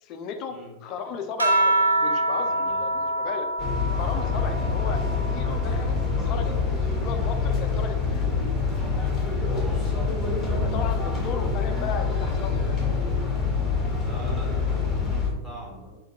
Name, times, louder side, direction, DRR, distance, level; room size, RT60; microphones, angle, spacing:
voice 1, 0.0-0.5 0.8-3.5 3.9-5.0 5.3-6.6 7.0-8.5 10.5-12.8, left 6 dB, 40° left, 6 dB, 0.4 m, -35 dB
sound 1, 1.4-6.2 6.6-8.4 9.6-10.1, right 2 dB, 80° right, 0.6 m, -27 dB
voice 2, 2.4-2.9 9.5-10.1 14.0-15.9, equal, 15° right, -4 dB, 1.4 m, -43 dB
sound 2, 3.6-15.3, left 4 dB, 10° left, 1.3 m, -25 dB
3.6 x 3.4 x 2.8 m, 1.0 s
figure-of-eight pair, 90°, 0 cm